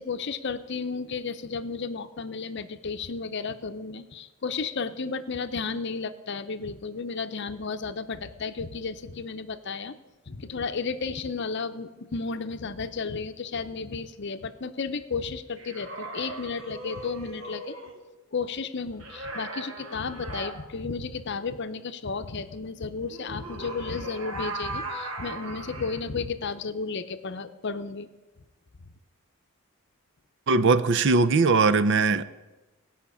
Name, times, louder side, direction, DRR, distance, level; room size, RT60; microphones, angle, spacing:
voice 1, 0.0-9.9 10.3-17.8 18.3-28.1, left 4 dB, 55° left, 10 dB, 0.7 m, -33 dB
sound 1, 15.6-18.0 19.0-20.5 23.1-26.0, right 2 dB, 70° right, 1.7 m, -38 dB
voice 2, 30.5-32.2, right 4 dB, 55° right, 14 dB, 0.6 m, -20 dB
17.0 x 5.8 x 8.4 m, 1.1 s
head